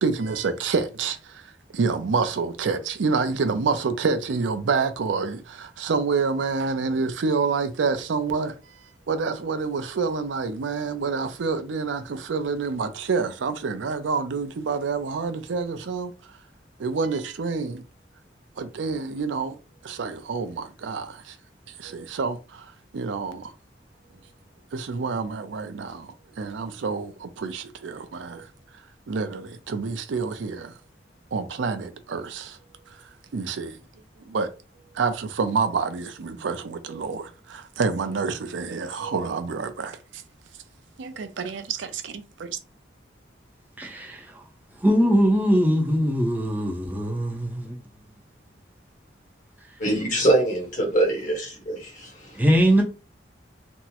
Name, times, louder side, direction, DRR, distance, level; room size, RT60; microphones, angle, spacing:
voice 1, 0.0-8.8 9.1-16.4 16.8-17.8 18.6-21.4 21.7-23.5 24.7-28.5 29.1-30.8 31.3-32.6 32.8-33.8 34.2-34.5 34.9-40.2 41.0-42.6, right 4 dB, 85° right, 0.5 m, -28 dB
voice 2, 43.8-44.2 44.8-47.8 52.3-52.8, equal, 10° right, 0.6 m, -21 dB
voice 3, 49.8-52.3, right 1 dB, 45° left, 1.1 m, -23 dB
3.5 x 2.0 x 2.8 m
head